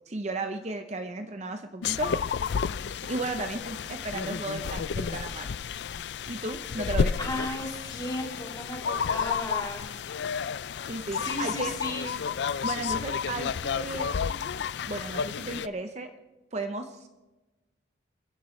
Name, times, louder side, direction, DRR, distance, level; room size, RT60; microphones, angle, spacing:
voice 1, 0.1-2.1 3.0-5.5 6.3-7.1 10.9-11.7 12.6-14.1 14.9-16.1 16.5-17.1, right 2 dB, 35° right, 7 dB, 0.7 m, -34 dB
sound 1, 1.8-15.7, left 6 dB, 65° left, 0.4 m, -31 dB
voice 2, 7.2-9.8 11.1-12.1, left 2 dB, 20° left, -1 dB, 2.5 m, -35 dB
27.0 x 11.0 x 3.2 m, 1.1 s
head